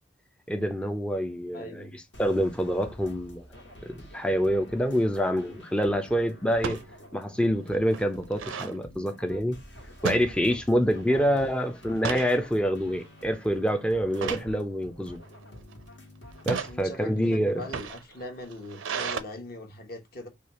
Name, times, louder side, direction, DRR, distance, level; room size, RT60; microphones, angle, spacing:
voice 1, 0.5-3.4 3.9-6.8 7.1-9.6 10.0-15.2 16.5-17.6, equal, 5° left, 0.3 m, -26 dB
voice 2, 1.5-2.0 11.1-11.5 16.7-20.3, left 2 dB, 50° left, 1.0 m, -41 dB
sound 1, 2.1-16.9, equal, 70° left, 1.4 m, -49 dB
sound 2, 4.8-5.1 6.5-6.9 7.4-7.5 7.7-8.8 10.0-10.9 11.2-11.4 11.8-12.4 12.9-13.2 14.1-14.5 15.3-15.7 16.3-16.7 17.5-19.2, right 6 dB, 85° right, 0.5 m, -34 dB
3.1 x 2.3 x 4.0 m
head